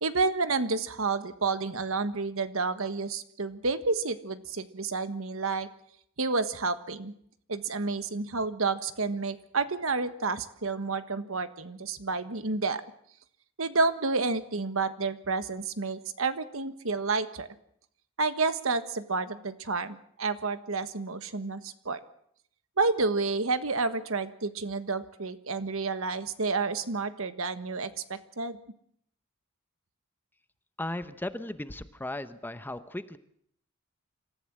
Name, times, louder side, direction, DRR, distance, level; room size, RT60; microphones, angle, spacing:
voice 1, 0.0-5.7 6.2-7.1 7.5-12.8 13.6-17.5 18.2-22.0 22.8-28.6, right 4 dB, 70° right, 11 dB, 1.4 m, -30 dB
voice 2, 30.8-33.2, left 1 dB, 10° left, 12 dB, 0.8 m, -36 dB
26.5 x 14.5 x 7.5 m, 0.68 s
head